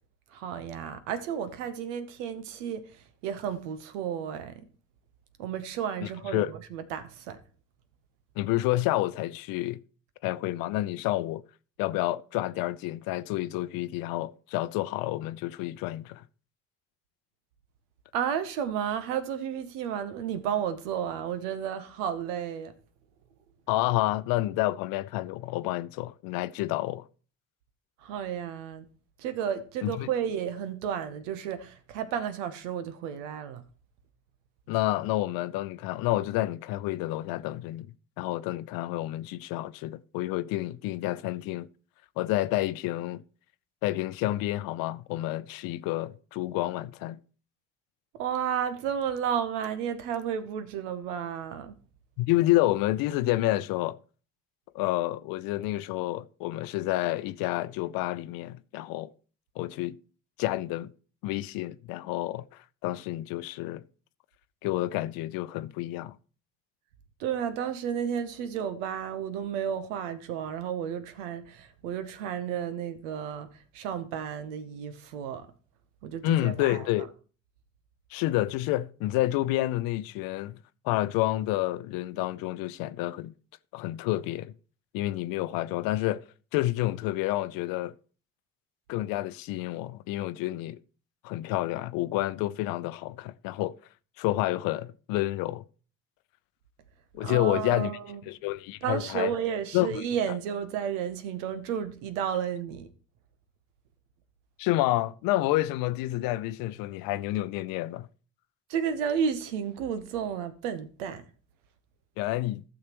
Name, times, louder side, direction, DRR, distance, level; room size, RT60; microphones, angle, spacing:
voice 1, 0.3-4.7 5.4-7.4 18.1-22.7 28.0-28.9 29.2-33.6 48.2-51.7 67.2-73.5 73.7-75.5 76.0-77.1 97.2-98.2 98.8-102.9 108.7-111.2, right 8 dB, 75° right, 1.0 m, -32 dB
voice 2, 6.0-6.5 8.4-9.8 10.2-11.4 11.8-16.2 23.7-27.0 29.8-30.1 34.7-37.9 38.2-41.7 42.2-43.2 43.8-47.2 52.2-54.0 54.7-59.1 59.6-60.0 60.4-60.9 61.2-62.4 62.8-63.8 64.6-66.2 76.2-77.1 78.1-80.6 80.8-83.3 83.7-84.5 84.9-86.2 86.5-87.9 88.9-90.8 91.2-93.8 94.2-95.6 97.1-97.9 98.3-99.3 99.7-99.9 104.6-108.1 112.2-112.6, left 16 dB, 65° left, 0.6 m, -29 dB
15.0 x 6.4 x 3.0 m
hypercardioid pair, 50°, 38 cm